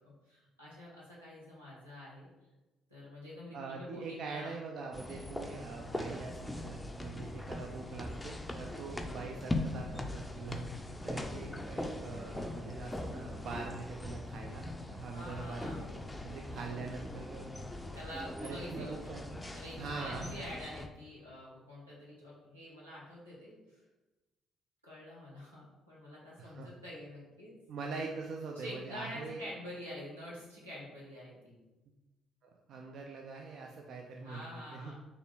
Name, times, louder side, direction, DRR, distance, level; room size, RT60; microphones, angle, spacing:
voice 1, 0.1-2.3 2.9-4.6 5.0-5.3 15.1-15.9 17.9-19.2 19.5-23.8 24.8-27.6 28.6-31.6 34.2-34.9, left 1 dB, 85° right, -7 dB, 1.0 m, -47 dB
voice 2, 3.5-10.7 11.0-17.8 18.4-19.3 19.8-20.3 26.4-26.7 27.7-29.4 32.4-34.9, right 4 dB, 50° right, 1 dB, 0.4 m, -43 dB
sound 1, 4.9-20.9, left 1 dB, 10° left, 0.4 m, -41 dB
3.8 x 3.0 x 3.9 m, 1.1 s
figure-of-eight pair, 45°, 0 cm